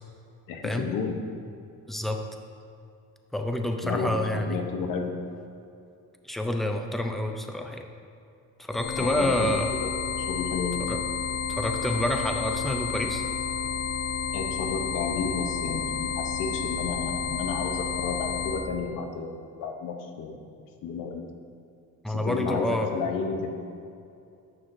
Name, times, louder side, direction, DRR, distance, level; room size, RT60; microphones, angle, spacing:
voice 1, 0.5-1.1 3.8-5.1 9.0-10.8 14.3-20.4 20.8-21.2 22.1-23.5, left 5 dB, 80° left, 3 dB, 0.9 m, -32 dB
voice 2, 1.9-2.2 3.3-4.6 6.2-7.9 8.6-9.7 10.8-11.0 11.5-13.2 22.0-22.9, left 1 dB, ahead, 4 dB, 0.5 m, -28 dB
sound 1, 8.7-18.7, left 6 dB, 30° left, 0.7 m, -31 dB
9.8 x 6.3 x 2.6 m, 2.6 s
cardioid pair, 120°, 33 cm